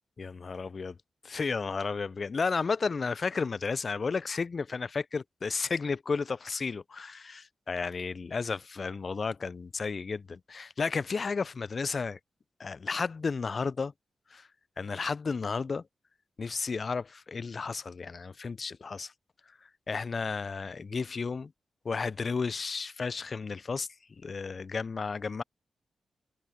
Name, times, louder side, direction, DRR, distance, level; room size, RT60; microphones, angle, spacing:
voice 1, 0.2-1.0 1.2-12.2 12.6-13.9 14.3-14.5 14.8-15.8 16.4-19.1 19.9-21.5 21.8-23.9 24.2-25.4, left 4 dB, 50° left, 0.3 m, -33 dB
cardioid pair, 60°, 0 cm